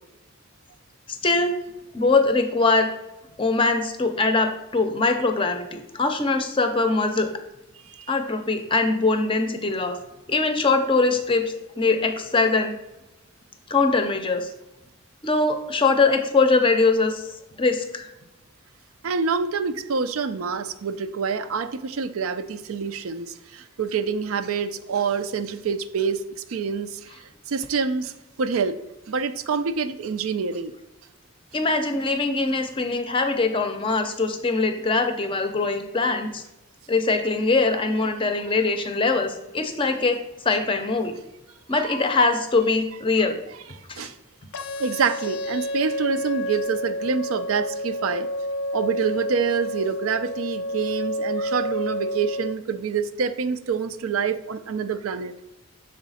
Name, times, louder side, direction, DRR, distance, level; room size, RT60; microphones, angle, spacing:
voice 1, 1.1-1.5 1.9-2.9 3.4-7.3 8.1-10.0 10.3-12.8 13.7-14.5 15.2-17.3 17.6-18.1 31.5-36.4 36.9-40.2 40.4-41.2 41.7-43.4 43.9-44.1, left 3 dB, 25° left, 6 dB, 0.5 m, -22 dB
voice 2, 19.0-28.1 28.4-28.8 29.1-30.7 41.8-42.0 44.0-44.2 44.8-48.3 48.7-55.3, right 5 dB, 80° right, 11 dB, 0.4 m, -26 dB
sound 1, 44.5-52.5, equal, 90° left, 0.5 m, -29 dB
6.3 x 3.9 x 4.1 m, 0.98 s
head